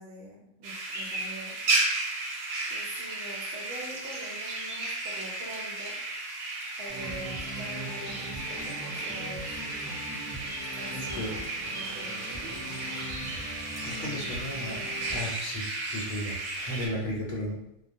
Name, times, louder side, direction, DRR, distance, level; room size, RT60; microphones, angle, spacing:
voice 1, 0.0-2.0 2.7-5.9 6.8-9.6 10.6-11.4 11.7-12.6, right 1 dB, 65° right, -3 dB, 0.7 m, -44 dB
sound 1, 0.6-16.9, right 2 dB, 85° right, 1.0 m, -34 dB
sound 2, 6.9-15.2, right 1 dB, ahead, 1.0 m, -40 dB
voice 2, 10.9-11.3 13.8-17.6, left 1 dB, 75° left, -2 dB, 1.0 m, -35 dB
2.3 x 2.1 x 2.6 m, 0.79 s
omnidirectional pair, 1.4 m